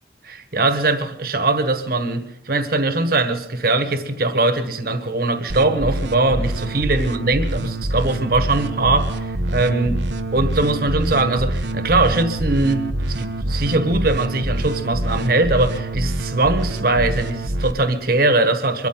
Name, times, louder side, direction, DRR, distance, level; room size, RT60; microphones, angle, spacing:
voice 1, 0.2-10.0 10.3-18.9, right 2 dB, 55° right, 1.5 m, -21 dB
sound 1, 5.5-17.7, right 1 dB, 90° right, 1.0 m, -25 dB
23.5 x 13.5 x 3.9 m
head